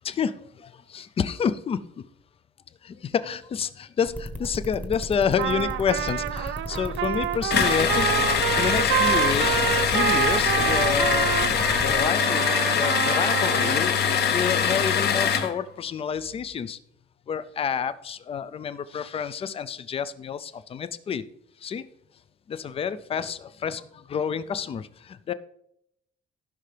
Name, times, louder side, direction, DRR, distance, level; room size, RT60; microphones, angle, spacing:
voice 1, 0.0-2.0 2.8-9.6 9.9-16.8 17.3-21.2 21.6-21.8 22.5-25.3, left 7 dB, 30° left, 14 dB, 0.4 m, -29 dB
sound 1, 4.1-12.0, equal, 5° left, 0.9 m, -35 dB
Trumpet, 5.4-13.9, right 13 dB, 70° right, 0.4 m, -27 dB
sound 2, 7.5-15.5, left 7 dB, 50° left, 0.9 m, -23 dB
15.5 x 5.5 x 3.3 m, 0.75 s
cardioid pair, 160°, 21 cm